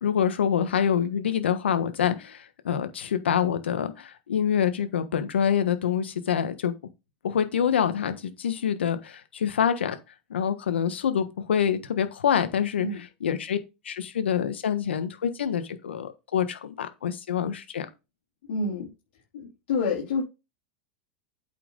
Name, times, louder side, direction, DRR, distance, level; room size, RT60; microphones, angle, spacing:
voice 1, 0.0-6.7 7.2-9.9 10.3-12.9 13.2-13.6 13.8-17.9, left 8 dB, 85° left, 1.4 m, -26 dB
voice 2, 18.5-18.9 19.3-20.2, left 4 dB, 70° left, 3.3 m, -28 dB
8.5 x 5.8 x 3.9 m
hypercardioid pair, 105°, 6 cm